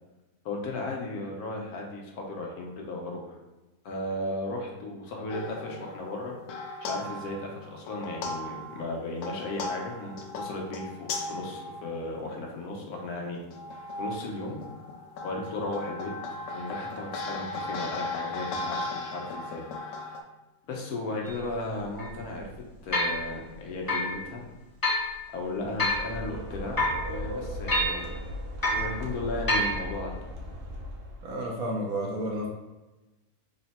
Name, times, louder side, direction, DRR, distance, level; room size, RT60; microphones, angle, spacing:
voice 1, 0.4-3.4 3.8-6.3 6.8-13.4 14.0-14.6 15.2-16.1 16.5-19.6 20.7-22.5 22.8-24.4 25.3-28.1 28.6-30.2, left 2 dB, 85° left, 0 dB, 1.3 m, -35 dB
sound 1, 5.3-12.7 13.4-20.2, left 2 dB, 70° left, 0.8 m, -37 dB
sound 2, 21.3-21.4 22.0-22.1 22.9-23.2 23.9-24.1 24.8-25.1 25.8-26.1 26.8-27.0 27.7-28.0 28.6-28.9 29.5-29.8, left 1 dB, 35° left, 0.3 m, -26 dB
sound 3, 25.5-31.5, left 1 dB, 55° right, 0.7 m, -38 dB
voice 2, 31.2-32.5, right 1 dB, 70° right, -2 dB, 1.2 m, -31 dB
3.7 x 2.1 x 4.1 m, 1.1 s
omnidirectional pair, 1.6 m